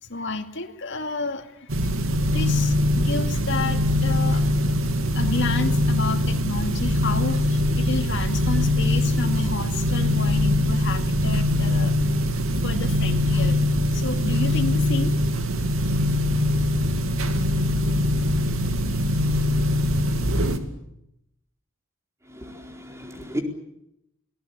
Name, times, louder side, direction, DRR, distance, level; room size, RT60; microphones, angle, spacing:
voice 1, 0.0-1.7 2.3-4.4 5.0-12.0 12.6-13.7 13.9-15.2, left 3 dB, 60° left, 6 dB, 2.4 m, -31 dB
sound 1, 1.7-20.6, left 1 dB, 85° right, 2.5 m, -22 dB
voice 2, 22.3-23.4, equal, 15° right, 3 dB, 4.3 m, -34 dB
28.5 x 19.0 x 8.6 m, 0.81 s
head